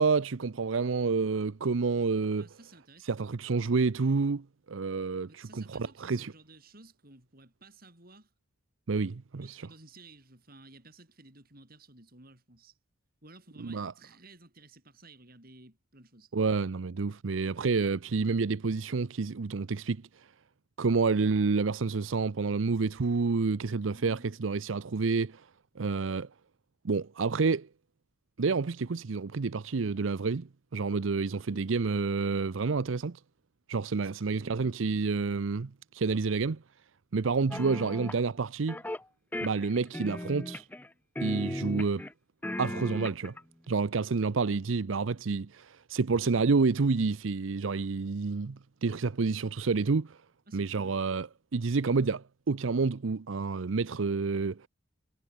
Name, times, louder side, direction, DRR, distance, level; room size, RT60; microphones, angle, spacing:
voice 1, 0.0-2.5 3.0-6.3 8.9-9.7 13.6-13.9 16.3-20.3 20.8-25.5 25.8-26.3 26.8-27.7 28.4-33.2 33.7-36.6 37.1-38.8 39.4-40.7 41.2-42.1 42.6-43.3 43.7-50.2 50.5-51.3 51.5-54.7, right 4 dB, 80° right, 0.6 m, -29 dB
voice 2, 2.3-3.2 5.3-8.3 9.4-12.8 13.2-16.3 23.8-24.4 31.5-31.9 34.0-35.0 50.5-51.0, right 2 dB, 50° right, 7.4 m, -54 dB
sound 1, 37.5-38.2 38.7-39.0 39.3-40.9 41.2-42.1 42.4-43.4, left 1 dB, 10° left, 0.5 m, -36 dB
head